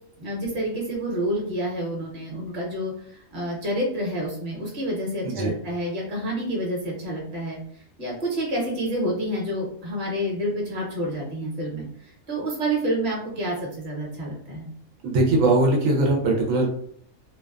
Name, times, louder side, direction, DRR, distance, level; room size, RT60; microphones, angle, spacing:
voice 1, 0.2-14.7, right 1 dB, 45° right, -3 dB, 1.0 m, -29 dB
voice 2, 15.0-16.7, right 2 dB, 85° right, 0 dB, 1.1 m, -20 dB
2.5 x 2.2 x 2.4 m, 0.62 s
omnidirectional pair, 1.3 m